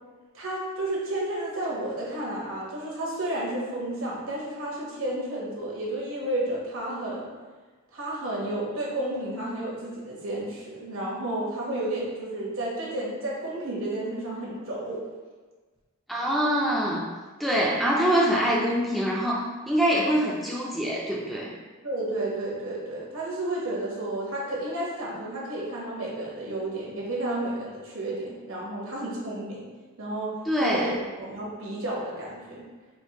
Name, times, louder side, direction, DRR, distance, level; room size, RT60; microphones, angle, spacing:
voice 1, 0.3-7.3 7.9-15.0 21.8-29.6 30.0-32.6, right 1 dB, 75° right, -4 dB, 1.0 m, -32 dB
voice 2, 16.1-17.1 17.4-21.5 30.5-30.9, equal, ahead, -4 dB, 0.3 m, -24 dB
4.4 x 2.5 x 2.8 m, 1.3 s
head